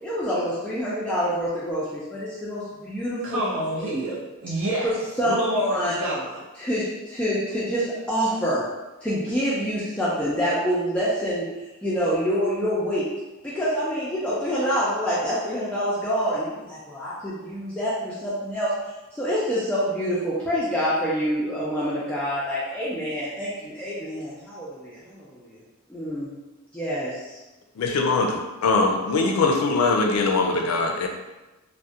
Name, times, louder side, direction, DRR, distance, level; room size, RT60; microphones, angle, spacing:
voice 1, 0.0-3.4 3.8-3.9 4.8-4.9 5.2-6.0 6.6-8.6 9.0-11.5 11.8-13.1 13.4-18.7 19.1-25.6 25.9-26.3 26.7-27.4, equal, 5° left, -9 dB, 0.3 m, -26 dB
voice 2, 3.2-4.9 5.2-6.4, right 1 dB, 65° right, -5 dB, 0.5 m, -27 dB
voice 3, 27.8-31.1, left 3 dB, 90° left, 2 dB, 0.3 m, -22 dB
2.3 x 2.1 x 2.7 m, 1.1 s
head